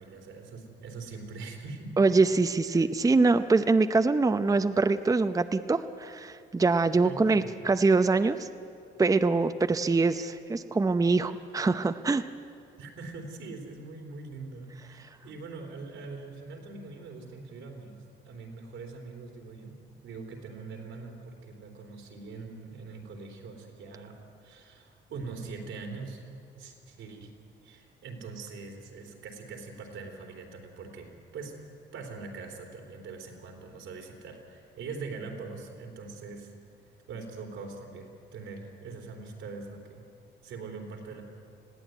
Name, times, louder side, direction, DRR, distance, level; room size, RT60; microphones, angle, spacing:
voice 1, 0.0-1.9 2.7-2.9 7.0-7.5 12.8-26.2 26.6-31.6 31.9-36.5 37.1-40.0 40.4-41.2, right 4 dB, 85° right, 2 dB, 3.6 m, -42 dB
voice 2, 2.0-8.5 9.0-12.3, right 3 dB, 15° right, 9 dB, 0.7 m, -24 dB
20.0 x 15.5 x 9.4 m, 2.5 s
cardioid pair, 90°, 20 cm